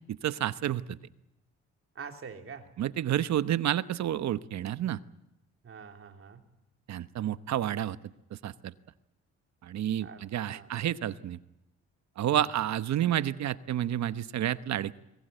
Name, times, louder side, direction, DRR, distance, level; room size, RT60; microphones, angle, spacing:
voice 1, 0.1-1.0 2.8-5.0 6.9-8.0 8.3-8.7 9.6-11.4 12.2-14.9, right 11 dB, 65° right, 14 dB, 1.0 m, -30 dB
voice 2, 1.9-2.7 5.6-6.4 10.0-10.2 10.5-10.9 12.3-12.5, right 6 dB, 45° right, 4 dB, 3.2 m, -45 dB
23.0 x 19.5 x 9.1 m, 0.92 s
cardioid pair, 90°, 30 cm